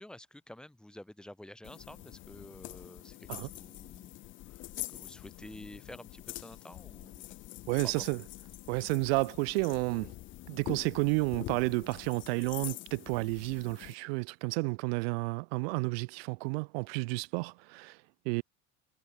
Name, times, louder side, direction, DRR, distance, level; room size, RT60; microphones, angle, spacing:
voice 1, 0.0-7.4 7.8-8.1, left 1 dB, 5° left, 4.2 m, -50 dB
sound 1, 1.6-14.0, left 16 dB, 40° left, 2.6 m, -45 dB
voice 2, 7.7-8.2 8.7-10.1 10.5-18.0 18.2-18.4, right 30 dB, 85° right, 1.5 m, -31 dB
cardioid pair, 180°, 30 cm